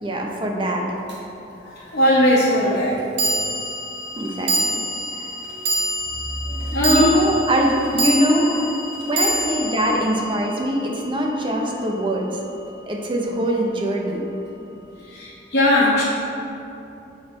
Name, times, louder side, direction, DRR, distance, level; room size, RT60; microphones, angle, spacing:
voice 1, 0.0-1.0 4.2-4.8 5.1-5.3 6.9-8.5 9.1-12.3 12.9-14.2, equal, 30° right, 0 dB, 0.7 m, -22 dB
sound 1, 1.1-1.2 3.2-11.6, right 1 dB, 85° right, 1.2 m, -26 dB
voice 2, 1.6-3.1 4.2-4.8 5.2-5.8 6.4-7.2 8.3-8.6 9.1-9.3 15.0-16.0, left 1 dB, 65° left, -7 dB, 1.0 m, -20 dB
6.5 x 4.3 x 4.3 m, 2.9 s
head